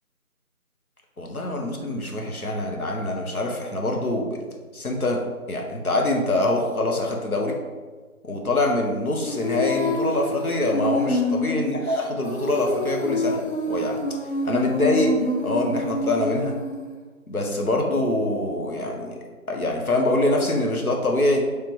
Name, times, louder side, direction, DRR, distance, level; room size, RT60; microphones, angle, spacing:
voice 1, 1.2-4.4 4.7-5.2 5.5-7.6 8.2-13.4 13.7-14.0 14.4-15.1 15.4-16.6 17.3-19.2 19.5-21.4, left 1 dB, 75° left, 1 dB, 1.0 m, -24 dB
Female singing, 9.3-16.9, left 2 dB, 45° left, 0.7 m, -27 dB
5.1 x 3.3 x 3.0 m, 1.4 s
figure-of-eight pair, 180°, 44 cm